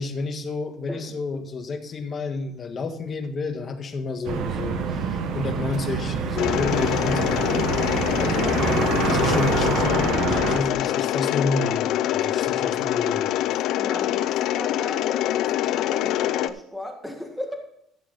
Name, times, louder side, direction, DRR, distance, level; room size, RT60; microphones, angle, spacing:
voice 1, 0.0-7.5 8.2-8.5 9.0-13.3, left 3 dB, 35° left, 6 dB, 1.6 m, -30 dB
sound 1, 4.2-10.6, right 6 dB, 65° right, 1.6 m, -26 dB
Mechanisms, 6.4-16.5, left 13 dB, 65° left, 0.6 m, -24 dB
voice 2, 13.8-17.5, left 1 dB, ahead, 2 dB, 1.7 m, -36 dB
14.0 x 7.5 x 4.1 m, 0.74 s
cardioid pair, 125°, 0 cm